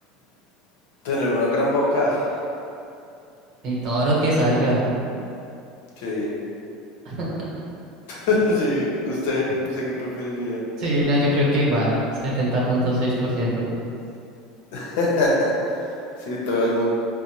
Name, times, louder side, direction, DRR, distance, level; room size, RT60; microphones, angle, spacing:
voice 1, 1.0-2.4 6.0-6.4 8.1-10.6 14.7-15.8 16.2-16.9, left 1 dB, 80° left, -4 dB, 0.7 m, -23 dB
voice 2, 3.6-4.9 7.0-7.2 10.8-13.7, equal, 55° right, -5 dB, 1.0 m, -22 dB
3.9 x 2.1 x 2.9 m, 2.6 s
supercardioid pair, 115°, 0 cm